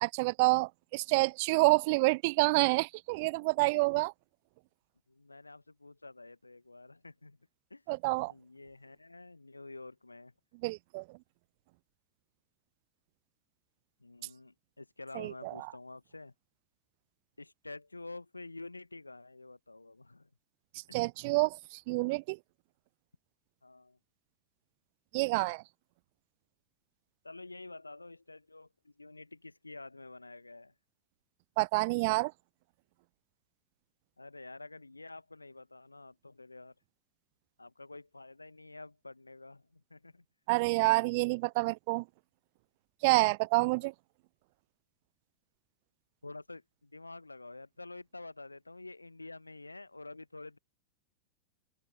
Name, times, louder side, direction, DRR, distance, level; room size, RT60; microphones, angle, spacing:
voice 1, 0.0-4.1 7.9-8.3 10.6-11.0 15.2-15.7 20.9-22.4 25.1-25.6 31.6-32.3 40.5-42.0 43.0-43.9, right 26 dB, 50° right, 0.4 m, -28 dB
voice 2, 5.1-7.4 7.7-7.8 8.2-10.3 14.0-16.3 17.4-20.3 23.6-24.0 27.2-30.7 34.2-36.7 37.6-40.2 40.9-41.0 43.8-43.9 46.2-50.6, left 2 dB, 80° left, 1.2 m, -49 dB
open air
figure-of-eight pair, 90°, 0 cm